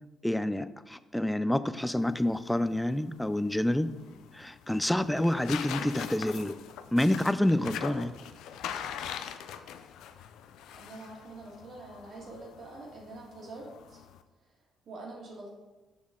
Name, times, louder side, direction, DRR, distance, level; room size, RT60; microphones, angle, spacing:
voice 1, 0.2-3.9 4.3-6.5 6.9-8.1, left 1 dB, 5° left, 13 dB, 0.3 m, -28 dB
sound 1, 2.0-14.2, left 9 dB, 85° left, 0.4 m, -42 dB
voice 2, 10.7-14.0 14.9-15.6, right 2 dB, 60° right, -2 dB, 1.8 m, -45 dB
6.2 x 6.1 x 3.7 m, 1.2 s
cardioid pair, 90°, 0 cm